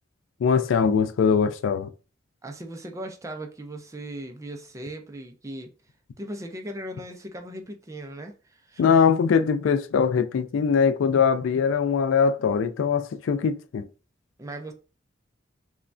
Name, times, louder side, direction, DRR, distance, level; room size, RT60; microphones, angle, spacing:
voice 1, 0.4-1.9 8.8-13.8, left 6 dB, 80° left, 0.3 m, -22 dB
voice 2, 2.4-5.7 6.2-8.8 14.4-14.7, right 1 dB, 15° right, 0.4 m, -38 dB
3.1 x 2.2 x 2.5 m
head